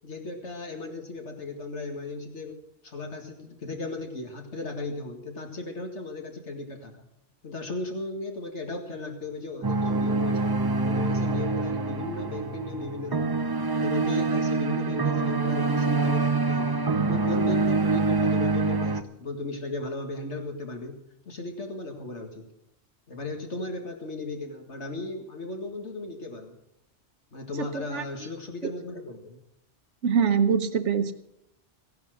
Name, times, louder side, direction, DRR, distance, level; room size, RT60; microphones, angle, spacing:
voice 1, 0.0-2.6 2.8-6.9 7.4-10.5 10.8-13.4 13.7-16.8 17.0-20.9 21.3-22.4 23.1-26.5 27.3-29.4, left 2 dB, 75° left, 4 dB, 2.2 m, -36 dB
sound 1, 9.6-19.0, right 3 dB, 25° right, 0.5 m, -25 dB
voice 2, 27.7-28.3 28.6-28.7 30.0-31.1, right 6 dB, 85° right, 10 dB, 1.3 m, -24 dB
16.0 x 10.5 x 6.4 m, 0.83 s
omnidirectional pair, 1.2 m